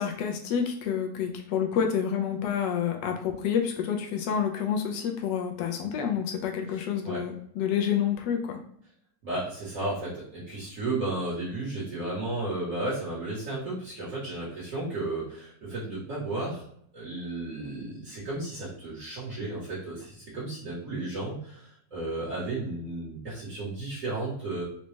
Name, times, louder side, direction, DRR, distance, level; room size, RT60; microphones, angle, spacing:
voice 1, 0.0-8.6, left 8 dB, 80° left, 3 dB, 1.2 m, -28 dB
voice 2, 6.7-7.2 9.2-16.6 16.9-24.6, right 2 dB, 50° right, -10 dB, 1.4 m, -33 dB
4.0 x 2.2 x 3.1 m, 0.66 s
omnidirectional pair, 1.9 m